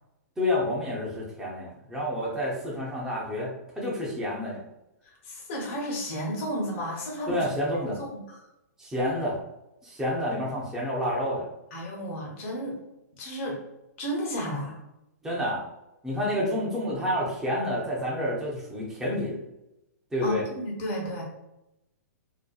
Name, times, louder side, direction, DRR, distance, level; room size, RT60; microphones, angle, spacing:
voice 1, 0.4-4.6 7.3-8.0 8.8-9.4 9.8-11.5 15.2-15.6 16.0-19.4 20.1-20.4, left 1 dB, 5° right, -6 dB, 0.6 m, -29 dB
voice 2, 5.0-7.5 7.8-8.4 11.7-12.8 13.2-13.6 14.0-14.8 20.2-21.2, equal, 45° left, -1 dB, 0.9 m, -33 dB
2.8 x 2.1 x 2.3 m, 0.89 s
hypercardioid pair, 130°, 9 cm